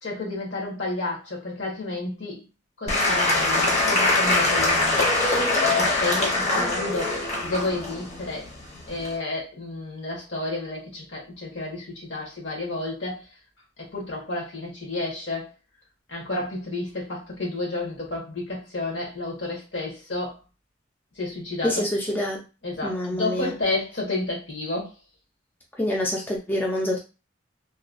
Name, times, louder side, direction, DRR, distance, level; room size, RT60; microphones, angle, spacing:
voice 1, 0.0-2.5 2.8-5.2 5.6-8.5 8.9-13.3 13.8-15.5 16.1-20.4 21.1-21.8 22.6-24.9, left 2 dB, 65° left, 1.3 m, -31 dB
Applause / Crowd, 2.9-9.2, left 2 dB, 35° left, 0.8 m, -23 dB
voice 2, 21.6-22.4 22.8-23.5 25.8-27.0, left 1 dB, 10° left, 0.5 m, -26 dB
3.0 x 2.2 x 2.5 m
head